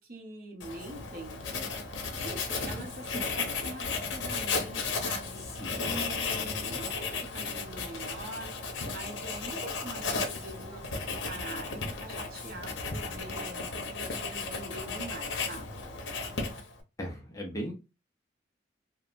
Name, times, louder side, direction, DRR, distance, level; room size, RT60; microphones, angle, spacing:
voice 1, 0.0-1.5 2.1-5.5 5.8-8.6 8.9-15.8, right 2 dB, 50° right, 0.8 m, -44 dB
Writing, 0.6-16.8, left 4 dB, 80° left, 0.7 m, -35 dB
voice 2, 5.6-6.0 17.0-17.7, equal, 15° left, 0.6 m, -37 dB
3.0 x 2.2 x 2.4 m
head